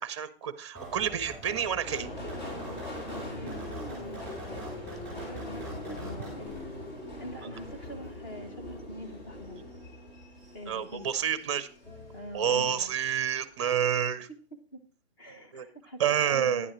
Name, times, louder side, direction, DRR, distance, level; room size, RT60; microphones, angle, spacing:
voice 1, 0.0-2.1 10.7-11.7 12.3-14.3 15.5-15.7 16.0-16.7, right 8 dB, 25° right, 14 dB, 0.7 m, -29 dB
sound 1, 0.7-6.6, right 2 dB, 5° left, 3.9 m, -44 dB
Subway metro underground, 1.8-12.6 12.9-13.6 13.9-14.0, left 1 dB, 40° left, 4.0 m, -41 dB
voice 2, 3.3-4.3 5.3-6.6 7.2-9.6 10.5-11.1 12.1-12.9 14.7-14.8 15.2-16.7, right 1 dB, 20° left, 6 dB, 0.9 m, -44 dB
sound 2, 8.0-13.2, equal, 85° left, 5.3 m, -55 dB
11.5 x 10.0 x 3.1 m, 0.41 s
hypercardioid pair, 160°, 33 cm